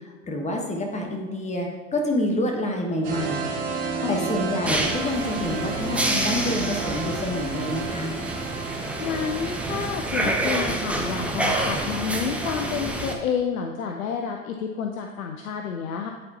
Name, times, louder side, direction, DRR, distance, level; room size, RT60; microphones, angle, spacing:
voice 1, 0.3-3.5 4.1-8.1, left 1 dB, 15° left, 2 dB, 1.2 m, -27 dB
sound 1, 3.0-9.9, right 4 dB, 35° right, 1.8 m, -31 dB
voice 2, 4.0-4.4 9.0-16.1, left 7 dB, 80° left, 3 dB, 0.6 m, -29 dB
sound 2, 4.6-13.1, right 1 dB, 5° right, 0.7 m, -28 dB
9.6 x 4.1 x 2.9 m, 1.4 s
hypercardioid pair, 90°, 41 cm